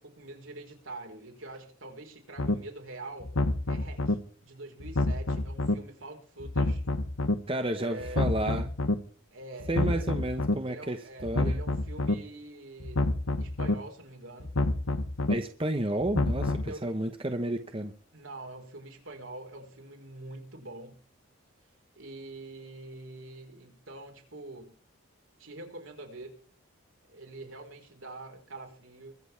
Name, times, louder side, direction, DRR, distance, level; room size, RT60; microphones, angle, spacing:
voice 1, 0.0-3.3 3.7-6.8 7.7-8.3 9.3-10.1 10.6-14.5 16.6-17.0 18.1-21.0 21.9-24.7 25.4-26.4 27.1-29.1, right 2 dB, 75° right, 3 dB, 4.8 m, -45 dB
sound 1, 2.4-2.5 3.2-4.1 4.8-5.7 6.4-7.3 8.0-8.9 9.6-10.5 11.2-12.1 12.8-13.7 14.4-15.3 16.0-16.7, left 2 dB, 85° left, 1.4 m, -28 dB
voice 2, 7.5-8.7 9.7-11.6 15.3-17.9, right 1 dB, 25° right, 7 dB, 1.1 m, -31 dB
23.0 x 7.9 x 4.6 m, 0.42 s
head